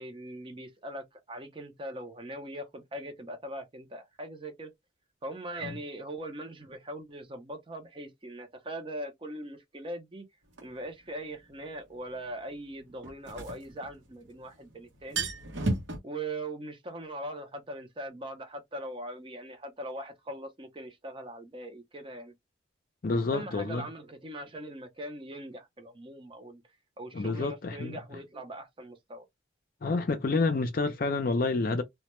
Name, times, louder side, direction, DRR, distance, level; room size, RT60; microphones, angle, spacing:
voice 1, 0.0-4.7 5.2-10.3 10.6-15.3 16.0-22.3 23.3-26.6 27.0-29.2, right 1 dB, 25° right, 0.5 m, -41 dB
sound 1, 10.6-10.7 13.0-14.3 14.6-14.7 15.0-16.0, right 2 dB, 75° right, 0.7 m, -32 dB
voice 2, 23.0-23.9 27.1-28.0 29.8-31.8, left 3 dB, 50° left, 0.4 m, -29 dB
2.1 x 2.1 x 2.9 m
head